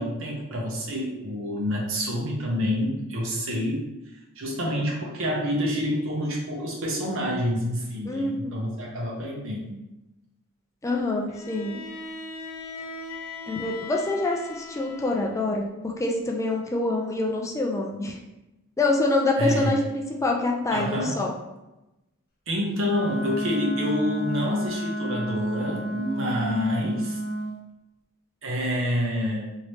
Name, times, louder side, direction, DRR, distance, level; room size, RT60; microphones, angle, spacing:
voice 1, 0.0-3.8 4.4-9.8 19.4-19.7 20.7-21.2 22.5-27.2 28.4-29.6, equal, 65° right, -2 dB, 0.9 m, -28 dB
voice 2, 8.1-8.6 10.8-11.8 13.5-15.7 16.0-18.2 18.8-21.3, left 2 dB, 15° left, 0 dB, 0.3 m, -26 dB
Bowed string instrument, 11.3-15.6, left 3 dB, 85° left, 0.4 m, -39 dB
Wind instrument woodwind instrument, 22.7-27.5, right 1 dB, 50° left, 0.7 m, -30 dB
3.0 x 2.8 x 3.1 m, 0.97 s
head